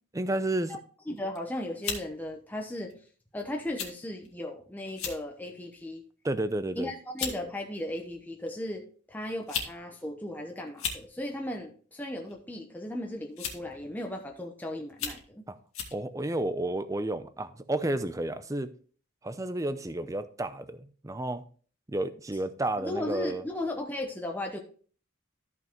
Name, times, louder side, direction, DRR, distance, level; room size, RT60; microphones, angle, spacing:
voice 1, 0.1-0.8 6.2-6.9 15.5-15.6 15.9-18.7 19.2-21.4 21.9-23.4, right 1 dB, 15° right, 0.5 m, -31 dB
voice 2, 1.1-2.9 3.3-6.0 6.8-15.5 22.8-24.6, left 1 dB, 10° left, 0.9 m, -36 dB
sound 1, 1.2-1.4 1.8-2.1 2.9-3.1 3.8-3.9 4.2-4.4 4.9-5.2 5.7-6.0 6.8-6.9 7.2-7.4 8.5-8.6 9.3-9.7 10.0-10.1 10.7-11.0 12.3-12.6 13.4-13.7 14.3-14.4 14.9-15.2 15.7-16.0, left 6 dB, 75° left, 1.9 m, -35 dB
13.5 x 5.9 x 3.0 m
head